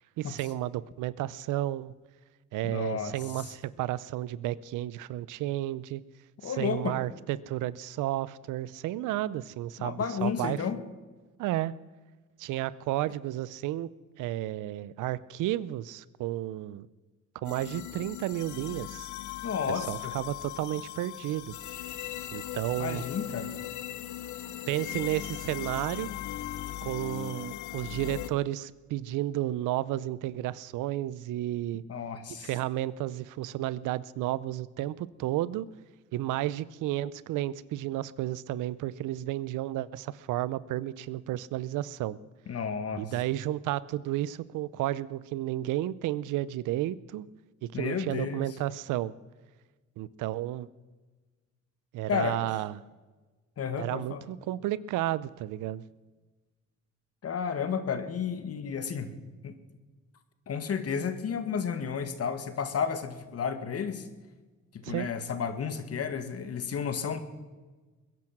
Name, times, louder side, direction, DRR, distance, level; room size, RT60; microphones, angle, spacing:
voice 1, 0.0-2.0 2.5-6.0 6.4-10.6 11.4-11.7 12.4-16.9 17.4-19.1 19.7-21.5 22.3-23.0 24.7-26.1 26.8-31.8 32.4-35.7 36.1-42.2 43.0-47.3 47.6-49.1 50.0-50.7 51.9-52.8 53.8-55.8 64.8-65.1, right 14 dB, 90° right, 19 dB, 0.7 m, -32 dB
voice 2, 2.6-3.1 6.4-7.0 9.8-10.8 19.4-20.2 22.8-23.5 31.9-32.5 42.5-43.1 47.7-48.5 52.1-52.4 53.6-54.2 57.2-59.2 59.4-59.6 60.5-64.1 64.7-67.2, left 6 dB, 55° left, 10 dB, 1.9 m, -32 dB
sound 1, 17.4-28.3, left 13 dB, 75° left, 1.0 m, -39 dB
21.0 x 11.0 x 6.0 m, 1.3 s
cardioid pair, 90°, 30 cm